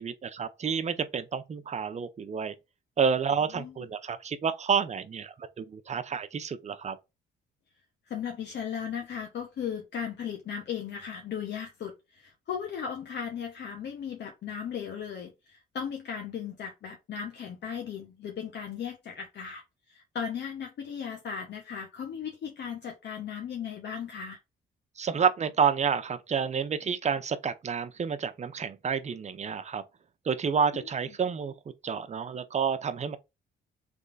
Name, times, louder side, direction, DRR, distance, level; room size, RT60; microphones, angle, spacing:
voice 1, 0.0-2.5 3.0-7.0 25.0-29.8 30.3-31.5 31.8-33.2, right 6 dB, 35° right, 0.6 m, -29 dB
voice 2, 8.1-19.6 19.9-24.4 30.7-30.9, left 7 dB, 60° left, 0.9 m, -36 dB
3.5 x 3.2 x 3.9 m
cardioid pair, 90°, 20 cm